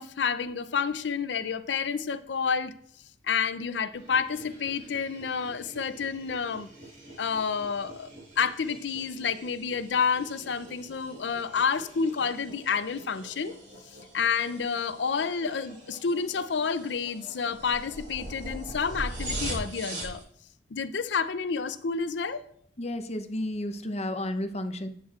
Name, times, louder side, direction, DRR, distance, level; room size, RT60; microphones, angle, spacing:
voice 1, 0.0-2.7 3.3-6.7 7.2-8.1 8.4-13.5 14.1-20.2 20.7-22.4, left 6 dB, 80° left, 12 dB, 0.5 m, -29 dB
sound 1, 3.9-20.2, right 1 dB, 50° right, 4.4 m, -42 dB
voice 2, 22.8-24.9, left 1 dB, 40° left, 8 dB, 0.7 m, -32 dB
11.5 x 8.6 x 2.4 m, 0.63 s
head